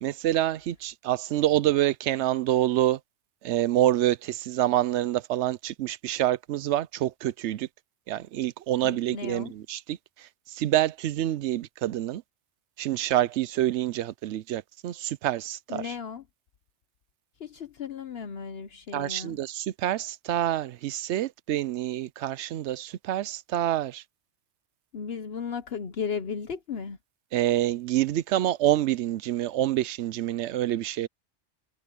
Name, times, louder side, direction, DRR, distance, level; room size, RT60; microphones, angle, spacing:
voice 1, 0.0-3.0 3.4-7.7 8.1-12.2 12.8-15.9 18.9-24.0 27.3-31.1, right 13 dB, 70° right, 0.8 m, -27 dB
voice 2, 8.8-9.5 15.7-16.2 17.4-19.4 24.9-27.0, left 6 dB, 60° left, 1.0 m, -35 dB
omnidirectional pair, 1.2 m